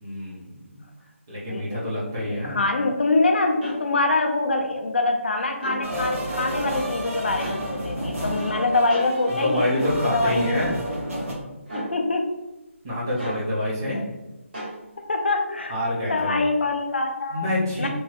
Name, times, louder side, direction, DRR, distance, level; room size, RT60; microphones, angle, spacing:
voice 1, 0.0-0.8 1.3-2.6 9.3-10.8 12.8-14.1 15.7-16.4 17.3-17.9, left 1 dB, 15° right, -7 dB, 0.5 m, -27 dB
voice 2, 1.5-1.9 2.2-9.7 10.0-10.7 11.7-12.4 13.9-14.0 15.0-15.7 16.0-17.5 17.8-17.9, left 2 dB, 50° left, 4 dB, 0.3 m, -24 dB
sound 1, 3.6-3.8 5.5-5.8 7.4-7.6 8.9-9.1 10.2-10.4 11.7-11.9 13.2-13.4 14.5-14.8, right 1 dB, 50° right, 1.4 m, -33 dB
sound 2, 5.8-11.3, equal, 75° right, 1.3 m, -30 dB
3.0 x 2.9 x 2.3 m, 1.0 s
hypercardioid pair, 175°, 7 cm